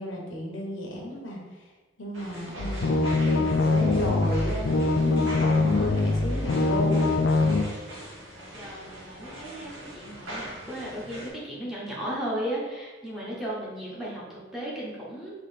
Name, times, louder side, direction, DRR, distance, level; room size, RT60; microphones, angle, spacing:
voice 1, 0.0-1.6 2.0-7.0, equal, 90° left, -1 dB, 1.0 m, -33 dB
sound 1, 2.1-11.3, right 1 dB, 85° right, 1.4 m, -42 dB
sound 2, 2.6-7.6, left 3 dB, 70° left, 0.4 m, -23 dB
voice 2, 8.5-15.3, right 1 dB, ahead, -7 dB, 0.9 m, -35 dB
3.8 x 3.0 x 4.1 m, 1.2 s
head